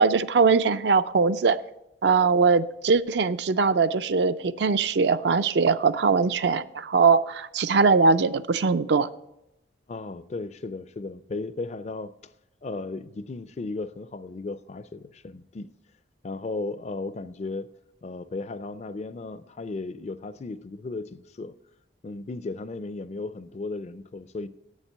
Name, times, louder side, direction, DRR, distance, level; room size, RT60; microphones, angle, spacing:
voice 1, 0.0-1.6 2.0-9.1, right 4 dB, 60° right, 0.4 m, -21 dB
voice 2, 9.9-12.1 12.6-15.7 16.2-17.7 18.0-21.6 22.0-24.5, left 3 dB, 35° left, 0.4 m, -35 dB
8.5 x 7.3 x 7.9 m
head